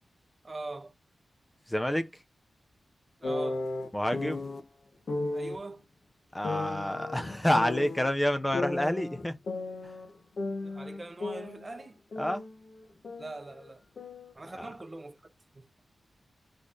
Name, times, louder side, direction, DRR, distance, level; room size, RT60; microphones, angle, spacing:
voice 1, 0.4-0.9 3.2-3.7 5.3-5.9 10.6-12.0 13.2-13.8 14.3-15.7, right 2 dB, 25° right, 0.9 m, -42 dB
voice 2, 1.7-2.1 3.9-4.4 6.3-9.4 12.2-12.4 14.6-14.7, left 1 dB, 10° left, 0.6 m, -28 dB
sound 1, 3.2-4.6 5.1-5.6 6.4-8.1 8.5-10.1 10.4-12.5 12.8-14.3, left 2 dB, 60° left, 0.9 m, -35 dB
4.1 x 3.2 x 3.9 m
wide cardioid pair, 130°, 0 cm